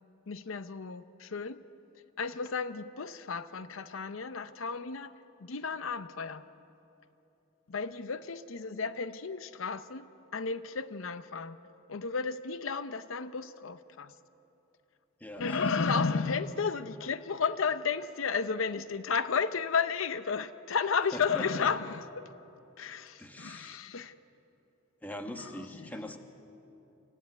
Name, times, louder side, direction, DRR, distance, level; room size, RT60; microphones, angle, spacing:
voice 1, 0.3-1.6 2.2-5.1 5.4-6.4 7.7-10.1 10.3-11.6 11.9-14.1 15.4-22.3 22.8-24.1 25.4-25.9, left 5 dB, 85° left, 12 dB, 0.7 m, -33 dB
voice 2, 15.2-16.0 21.1-21.7 23.2-23.8 25.0-26.2, left 1 dB, 10° left, 5 dB, 1.3 m, -41 dB
25.5 x 15.0 x 9.6 m, 3.0 s
head